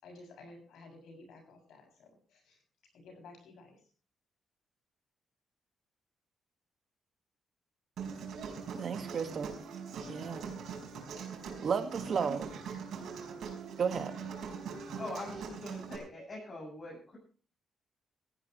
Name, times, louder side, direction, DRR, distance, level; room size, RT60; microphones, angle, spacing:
voice 1, 0.0-2.6 2.9-3.8, left 2 dB, 80° left, 3 dB, 7.3 m, -53 dB
Human voice, 8.0-16.0, right 6 dB, 70° right, 5.1 m, -42 dB
voice 2, 8.7-9.6 10.1-10.5 11.6-12.5 13.8-14.1, right 6 dB, 45° right, 8 dB, 1.9 m, -33 dB
voice 3, 15.0-17.2, left 2 dB, 30° left, -5 dB, 7.9 m, -43 dB
18.5 x 15.0 x 3.3 m, 0.39 s
cardioid pair, 145°, 0 cm